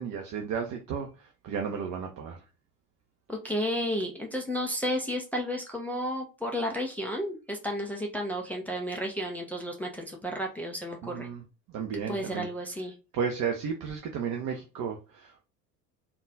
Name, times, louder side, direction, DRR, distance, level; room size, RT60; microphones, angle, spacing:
voice 1, 0.0-2.4 11.0-11.4 11.7-12.5 13.1-15.4, right 6 dB, 35° right, 0.7 m, -33 dB
voice 2, 3.3-11.3 12.1-12.9, equal, 5° left, 0.3 m, -32 dB
3.8 x 2.3 x 3.9 m
figure-of-eight pair, 65°, 47 cm